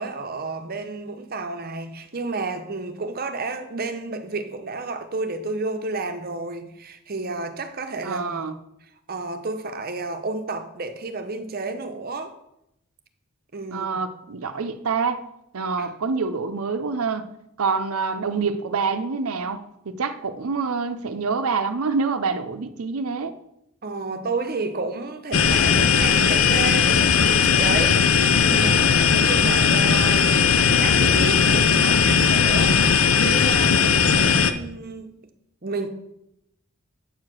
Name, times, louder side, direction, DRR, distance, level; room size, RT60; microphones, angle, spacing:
voice 1, 0.0-8.5 9.1-12.3 13.5-13.9 15.8-15.9 23.8-32.8 33.2-35.2 35.6-35.9, right 3 dB, 45° right, 0.8 m, -31 dB
voice 2, 8.0-8.5 13.7-15.3 15.5-17.3 17.6-23.4 34.1-34.6, right 4 dB, 80° right, 0.6 m, -26 dB
sound 1, 25.3-34.5, left 6 dB, 65° left, 0.6 m, -18 dB
8.2 x 4.8 x 6.2 m
head